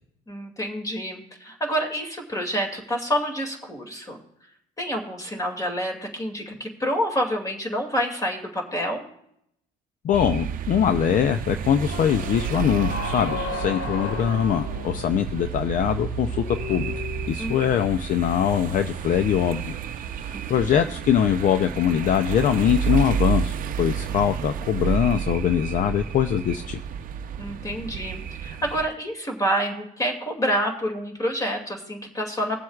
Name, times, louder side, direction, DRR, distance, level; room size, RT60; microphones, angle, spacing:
voice 1, 0.3-4.2 4.8-9.1 17.4-17.9 20.3-20.8 27.4-32.6, equal, 20° left, 2 dB, 2.4 m, -28 dB
voice 2, 10.0-16.9 17.3-19.8 20.2-26.8, left 9 dB, 50° left, 9 dB, 0.5 m, -22 dB
sound 1, 10.1-28.9, right 7 dB, 55° right, 0.6 m, -31 dB
sound 2, 11.9-17.9, left 3 dB, 70° left, 1.9 m, -35 dB
22.5 x 7.6 x 2.4 m, 0.73 s
cardioid pair, 110°, 17 cm